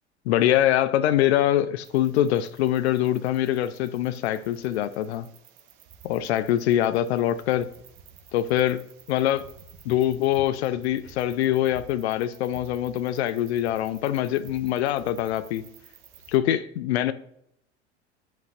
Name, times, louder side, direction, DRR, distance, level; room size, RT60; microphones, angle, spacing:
voice 1, 0.3-5.3 6.0-7.7 8.3-8.8 9.1-9.4 9.9-15.6 16.3-17.1, left 12 dB, 65° left, 15 dB, 0.5 m, -24 dB
sound 1, 1.8-16.4, right 7 dB, 50° right, 1.3 m, -51 dB
10.5 x 5.3 x 2.5 m, 0.75 s
figure-of-eight pair, 80°, 35 cm